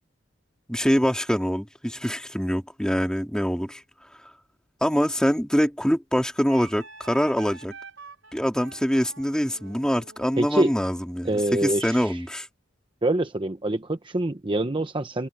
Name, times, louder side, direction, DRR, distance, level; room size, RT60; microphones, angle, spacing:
voice 1, 0.7-3.8 4.8-7.7 8.3-11.3 11.6-12.5, equal, 5° left, 2.5 m, -24 dB
Wind instrument woodwind instrument, 6.5-11.9, right 4 dB, 80° right, 6.1 m, -48 dB
voice 2, 10.4-10.7 11.2-12.2 13.0-15.3, right 1 dB, 25° right, 0.9 m, -25 dB
head